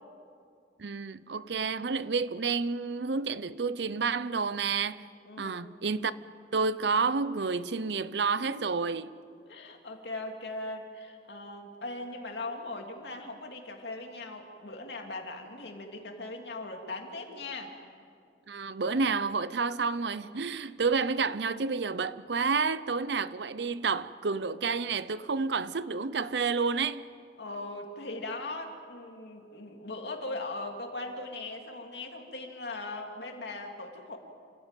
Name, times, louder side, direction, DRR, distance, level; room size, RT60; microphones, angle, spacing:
voice 1, 0.8-5.1 5.4-6.1 6.5-9.1 18.5-27.0, right 4 dB, 70° right, 0.7 m, -30 dB
voice 2, 5.3-5.6 8.3-8.6 9.5-17.8 27.4-34.2, left 2 dB, 70° left, 2.8 m, -39 dB
28.5 x 16.0 x 9.1 m
head